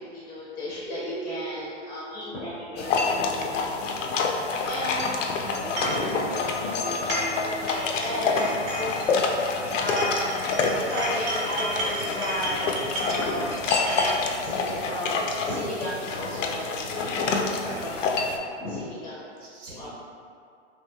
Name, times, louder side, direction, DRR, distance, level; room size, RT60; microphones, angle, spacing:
voice 1, 0.0-3.0 4.7-5.2 5.8-6.3 6.7-7.0 7.4-9.4 9.8-10.4 10.7-12.6 12.9-18.3 18.6-19.3 19.7-19.9, left 1 dB, 15° left, -8 dB, 0.4 m, -34 dB
Dog, 0.8-5.0 5.4-10.4 11.5-18.5, right 3 dB, 60° right, 0.8 m, -43 dB
sound 1, 2.8-18.4, left 4 dB, 85° left, 0.5 m, -28 dB
voice 2, 4.6-5.1 9.5-9.7 10.1-10.2 11.0-11.5 19.4-19.9, right 2 dB, 90° right, -6 dB, 1.2 m, -44 dB
sound 2, 5.8-6.0 6.9-7.4 7.7-9.5 9.9-14.2, right 1 dB, 35° right, 1.0 m, -32 dB
3.1 x 3.0 x 2.2 m, 2.3 s
hypercardioid pair, 140°, 36 cm